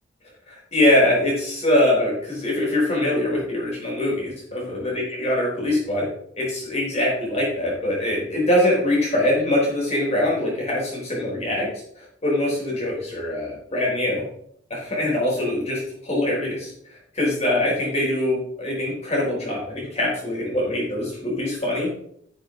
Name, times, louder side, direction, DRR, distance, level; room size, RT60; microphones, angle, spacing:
voice 1, 0.5-6.1 6.3-11.7 12.0-14.2 14.7-21.9, left 1 dB, 35° left, -4 dB, 4.0 m, -23 dB
11.0 x 6.3 x 3.9 m, 0.69 s
head